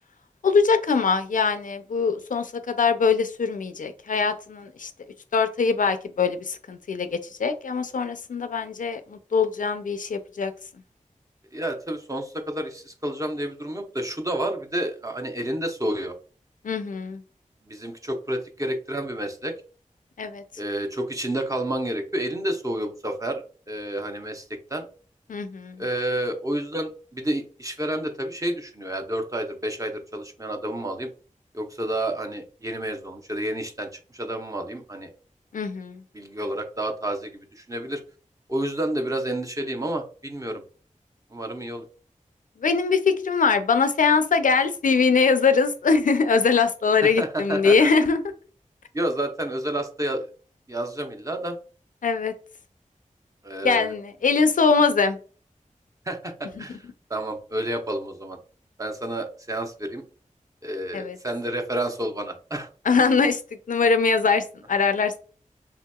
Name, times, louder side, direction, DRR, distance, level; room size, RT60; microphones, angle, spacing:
voice 1, 0.4-4.9 5.3-10.5 16.6-17.2 20.2-20.4 25.3-25.8 35.5-36.0 42.6-48.2 52.0-52.3 53.6-55.2 56.6-56.8 60.9-61.2 62.9-63.4 63.7-65.2, left 5 dB, 80° left, 9 dB, 0.4 m, -22 dB
voice 2, 11.5-16.2 17.7-19.5 20.6-24.9 25.8-31.1 31.5-35.1 36.1-38.0 38.5-40.6 41.3-41.9 47.0-47.9 48.9-50.3 50.7-51.6 53.4-53.9 56.1-58.4 58.8-60.0 60.6-62.7, right 1 dB, 25° right, 4 dB, 0.7 m, -30 dB
3.4 x 2.8 x 2.2 m, 0.39 s
wide cardioid pair, 55°, 13 cm